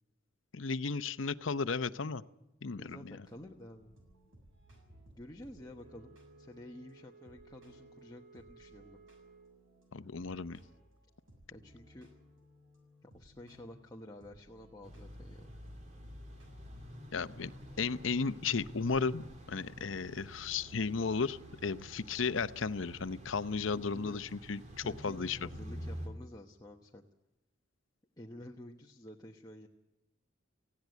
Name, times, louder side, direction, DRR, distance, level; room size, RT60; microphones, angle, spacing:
voice 1, 0.5-2.2 2.6-3.2 9.9-10.6 17.1-17.5 17.8-25.4, left 5 dB, 75° left, 14 dB, 0.7 m, -34 dB
voice 2, 2.8-3.9 5.1-9.0 11.5-12.1 13.0-15.6 23.9-24.3 24.8-27.0 28.2-29.7, left 1 dB, 20° left, 0 dB, 1.1 m, -51 dB
sound 1, 3.3-21.1, equal, 80° right, 6.7 m, -62 dB
Wind instrument woodwind instrument, 5.5-9.7, right 4 dB, 60° right, 2.6 m, -59 dB
sound 2, 14.8-26.1, equal, 35° right, 3.0 m, -48 dB
19.0 x 16.0 x 9.3 m, 0.97 s
head